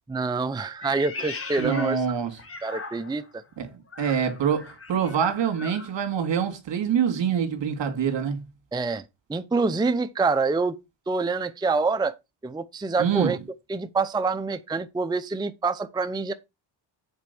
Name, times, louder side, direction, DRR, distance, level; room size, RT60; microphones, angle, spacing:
voice 1, 0.1-2.1 2.6-3.2 8.7-9.0 9.3-10.8 11.1-12.1 12.4-13.4 13.7-16.3, right 4 dB, 10° right, 0.6 m, -26 dB
Meow, 0.8-3.3 3.9-5.9, left 3 dB, 30° left, 1.8 m, -39 dB
voice 2, 1.6-2.4 3.6-8.4 13.0-13.3, right 7 dB, 65° right, 2.5 m, -25 dB
8.1 x 4.5 x 6.9 m
cardioid pair, 125°, 46 cm